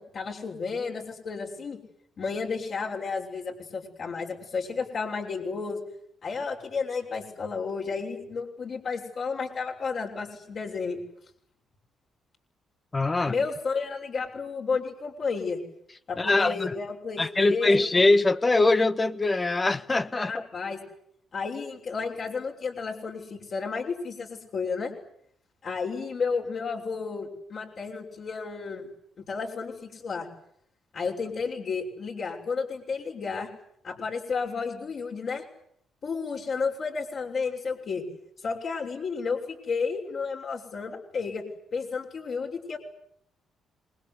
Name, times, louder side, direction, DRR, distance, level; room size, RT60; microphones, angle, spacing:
voice 1, 0.0-1.8 2.2-5.8 6.2-11.0 13.3-15.6 16.1-17.7 20.2-20.8 21.3-24.9 25.6-28.9 29.2-30.3 30.9-33.5 33.8-35.4 36.0-38.0 38.4-41.4 41.7-42.8, left 5 dB, 55° left, 6.2 m, -32 dB
voice 2, 12.9-13.3 16.2-16.7 17.2-20.4, left 2 dB, 25° left, 1.5 m, -23 dB
27.5 x 21.0 x 9.9 m
cardioid pair, 90°, 0 cm